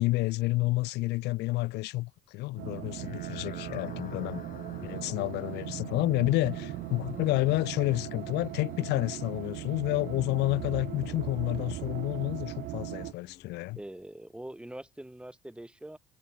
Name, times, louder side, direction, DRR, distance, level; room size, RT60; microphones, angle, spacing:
voice 1, 0.0-4.4 4.8-13.8, left 20 dB, 90° left, 1.4 m, -30 dB
sound 1, 2.6-13.1, right 18 dB, 80° right, 1.3 m, -39 dB
sound 2, 2.9-14.4, left 10 dB, 55° left, 7.8 m, -50 dB
voice 2, 13.7-16.0, right 1 dB, 5° right, 6.6 m, -43 dB
cardioid pair, 110°, 17 cm